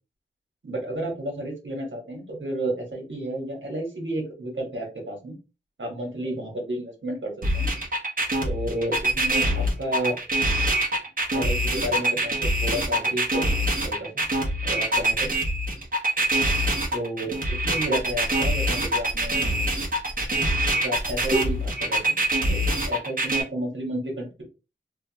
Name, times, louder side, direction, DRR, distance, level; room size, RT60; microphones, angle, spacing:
voice 1, 0.6-5.3 5.8-7.7 8.4-10.2 11.3-13.6 13.8-14.2 14.6-15.3 16.9-19.6 20.7-22.1 22.5-24.4, right 1 dB, 75° right, -1 dB, 1.4 m, -31 dB
sound 1, 7.4-23.4, right 1 dB, 45° right, 1.0 m, -24 dB
2.8 x 2.3 x 2.8 m, 0.30 s
wide cardioid pair, 50°, 20 cm